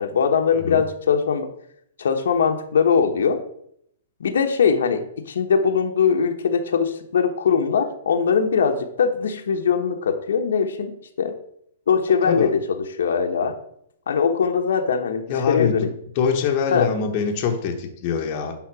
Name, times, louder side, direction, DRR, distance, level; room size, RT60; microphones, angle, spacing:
voice 1, 0.0-1.5 2.0-3.4 4.2-10.9 11.2-11.4 11.9-13.5 14.1-15.9 16.7-16.9, left 6 dB, 80° left, 5 dB, 1.1 m, -21 dB
voice 2, 15.3-18.6, left 6 dB, 30° left, 3 dB, 1.1 m, -24 dB
10.5 x 4.0 x 6.0 m, 0.71 s
hypercardioid pair, 175°, 0 cm